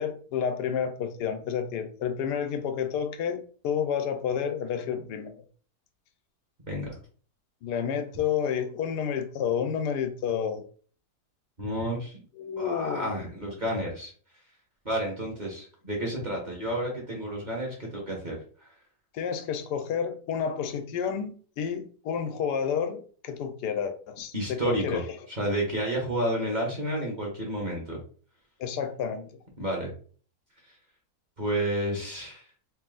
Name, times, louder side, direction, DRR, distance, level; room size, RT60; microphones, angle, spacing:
voice 1, 0.0-5.3 7.6-10.6 12.4-13.2 19.1-25.0 28.6-29.3, left 7 dB, 85° left, 1.2 m, -30 dB
voice 2, 11.6-12.2 12.6-14.1 14.8-18.7 24.3-25.0 25.3-28.0 29.6-29.9 30.7-30.8 31.4-32.5, right 1 dB, 35° right, 1.0 m, -31 dB
3.3 x 2.7 x 3.8 m
omnidirectional pair, 1.8 m